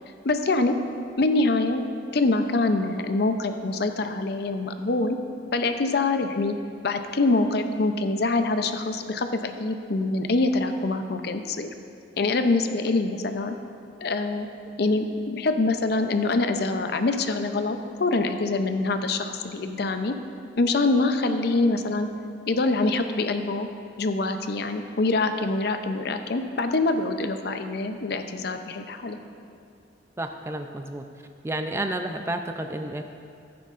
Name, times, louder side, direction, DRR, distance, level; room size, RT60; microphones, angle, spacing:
voice 1, 0.2-0.7 1.2-1.8 2.1-5.2 5.5-6.6 6.8-11.7 12.2-13.5 14.0-14.5 14.8-20.1 20.6-22.1 22.5-23.7 24.0-29.2, left 3 dB, 60° left, 7 dB, 0.6 m, -25 dB
voice 2, 30.2-31.1 31.4-33.0, right 1 dB, 15° right, 6 dB, 0.4 m, -30 dB
14.0 x 9.5 x 2.5 m, 2.5 s
head